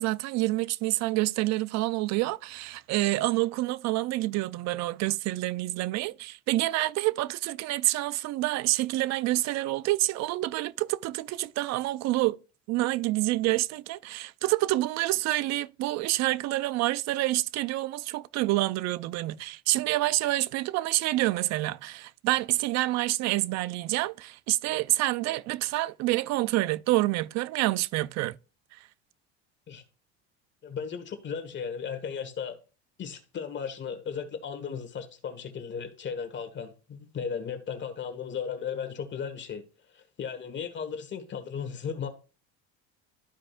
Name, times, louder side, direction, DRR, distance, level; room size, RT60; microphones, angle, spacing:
voice 1, 0.0-12.4 12.7-28.4, right 17 dB, 55° right, 0.5 m, -27 dB
voice 2, 30.6-32.6 33.0-39.6 39.9-42.1, left 6 dB, 35° left, 1.5 m, -36 dB
13.0 x 4.9 x 2.5 m
supercardioid pair, 120°, 32 cm